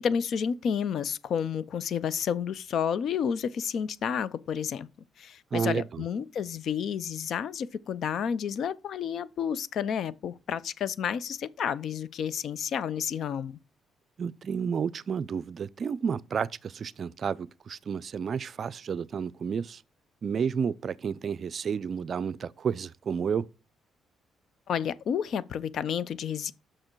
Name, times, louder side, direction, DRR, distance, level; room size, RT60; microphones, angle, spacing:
voice 1, 0.0-4.9 5.2-13.6 24.7-26.5, left 7 dB, 65° left, 0.5 m, -30 dB
voice 2, 5.5-6.1 14.2-19.8 20.2-23.5, right 6 dB, 50° right, 0.4 m, -31 dB
6.5 x 6.2 x 4.6 m
cardioid pair, 90°, 0 cm